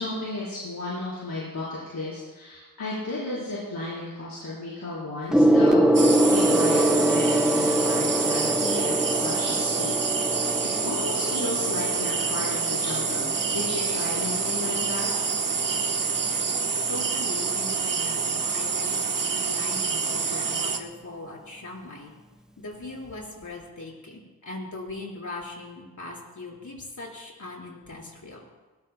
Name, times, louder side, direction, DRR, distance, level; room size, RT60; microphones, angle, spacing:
voice 1, 0.0-15.1, left 2 dB, 90° left, -8 dB, 4.1 m, -34 dB
Gong, 5.3-15.1 16.0-16.3, right 1 dB, ahead, 0.6 m, -24 dB
sound 1, 5.9-20.8, right 5 dB, 65° right, 1.2 m, -27 dB
voice 2, 16.9-22.1 22.6-28.5, left 2 dB, 60° left, -2 dB, 4.3 m, -40 dB
21.0 x 18.5 x 2.2 m, 1.2 s
wide cardioid pair, 80°, 35 cm